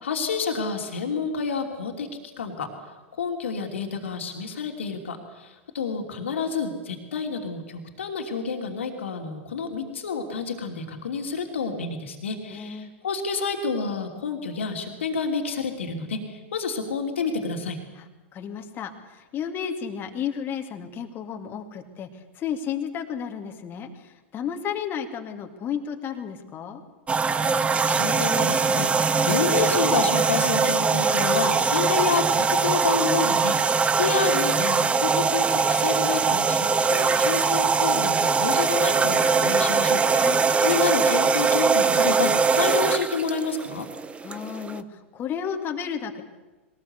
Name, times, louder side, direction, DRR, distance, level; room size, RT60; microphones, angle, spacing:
voice 1, 0.0-2.1 2.4-2.7 3.1-17.8 27.5-43.9, left 4 dB, 75° left, 3 dB, 2.9 m, -29 dB
voice 2, 12.5-12.9 18.0-18.1 18.3-22.1 22.3-26.8 40.2-40.4 44.2-46.2, left 8 dB, 30° left, 4 dB, 2.5 m, -32 dB
sound 1, 27.1-44.8, right 5 dB, 20° right, 1.0 m, -22 dB
21.5 x 19.0 x 8.2 m, 1.2 s
hypercardioid pair, 95°, 7 cm